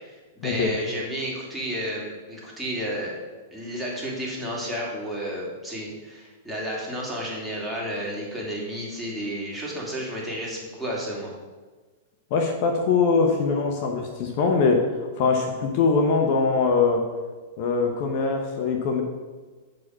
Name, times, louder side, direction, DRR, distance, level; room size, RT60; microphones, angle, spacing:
voice 1, 0.0-3.2 3.5-11.3, equal, 5° right, -5 dB, 2.5 m, -32 dB
voice 2, 12.3-14.8 15.2-17.0 17.6-19.0, left 4 dB, 50° left, 3 dB, 1.1 m, -22 dB
6.3 x 5.1 x 6.2 m, 1.3 s
hypercardioid pair, 110°, 0 cm